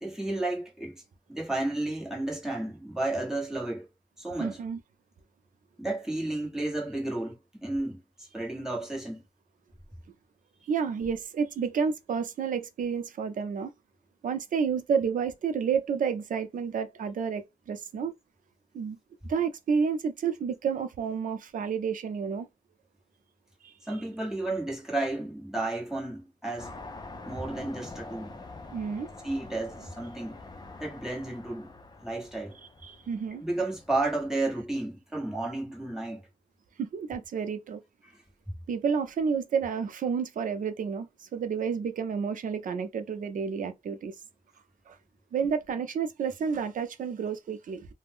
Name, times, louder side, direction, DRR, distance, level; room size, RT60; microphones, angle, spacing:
voice 1, 0.0-1.0 1.3-3.9 4.2-4.6 5.8-9.2 23.8-26.7 27.2-28.4 29.2-30.4 30.8-31.7 32.0-32.5 33.4-36.2 38.0-38.2, right 2 dB, 5° right, 1.1 m, -32 dB
voice 2, 4.4-4.8 10.7-13.7 14.2-18.1 18.7-19.0 19.2-22.5 23.6-23.7 28.7-29.1 32.8-33.4 36.8-37.8 38.7-44.1 44.9-45.0 45.3-47.9, right 6 dB, 90° right, 0.4 m, -30 dB
sound 1, 26.6-34.5, left 3 dB, 30° left, 0.5 m, -46 dB
2.4 x 2.0 x 3.5 m
wide cardioid pair, 100°, 13 cm